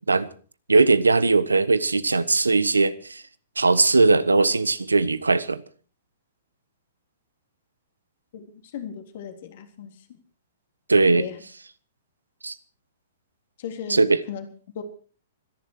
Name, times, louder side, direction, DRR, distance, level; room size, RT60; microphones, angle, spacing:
voice 1, 0.7-3.2 3.6-5.6 10.9-11.3 12.4-12.5 13.9-14.2, right 3 dB, 85° right, 1.1 m, -19 dB
voice 2, 8.7-9.9 11.1-11.4 13.6-14.0 14.3-14.5 14.7-14.8, left 8 dB, 55° left, 3.7 m, -36 dB
26.0 x 11.0 x 4.7 m
figure-of-eight pair, 115°, 0 cm